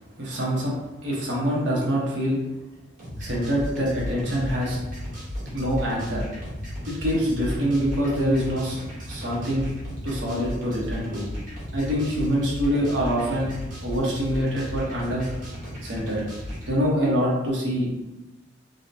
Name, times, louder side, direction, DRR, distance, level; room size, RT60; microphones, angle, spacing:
voice 1, 0.2-0.7 1.0-2.4 3.2-4.8 5.5-6.2 6.9-8.8 9.1-9.7 10.0-11.3 11.7-13.5 13.8-15.3 15.8-16.2 16.7-17.9, equal, 75° right, -5 dB, 0.9 m, -25 dB
sound 1, 3.0-16.7, equal, 45° right, 1.2 m, -35 dB
3.8 x 2.0 x 2.7 m, 1.1 s
head